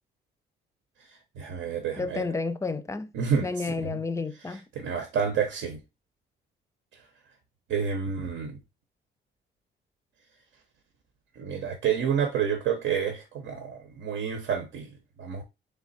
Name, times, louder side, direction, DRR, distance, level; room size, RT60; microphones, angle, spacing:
voice 1, 1.0-2.3 3.1-4.0 4.5-5.8 6.9-7.0 7.7-8.6 11.4-15.4, right 7 dB, 75° right, 0.8 m, -29 dB
voice 2, 2.0-3.1 3.4-4.6, left 3 dB, 15° left, 0.5 m, -31 dB
3.4 x 3.4 x 4.0 m
cardioid pair, 90°, 20 cm